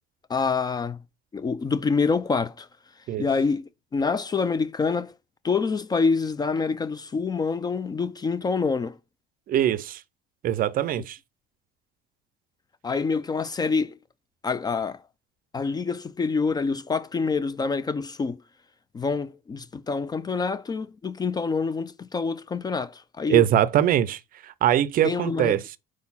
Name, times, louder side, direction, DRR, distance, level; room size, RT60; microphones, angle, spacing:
voice 1, 0.3-1.0 1.3-2.7 3.2-3.6 3.9-5.1 5.4-9.0 11.0-11.1 12.8-14.0 14.4-15.0 15.5-18.4 18.9-23.4 25.0-25.8, left 4 dB, 20° left, 0.4 m, -26 dB
voice 2, 9.5-10.0 10.4-11.2 23.3-25.6, right 11 dB, 45° right, 0.5 m, -22 dB
4.7 x 4.2 x 5.5 m
cardioid pair, 135°, 20 cm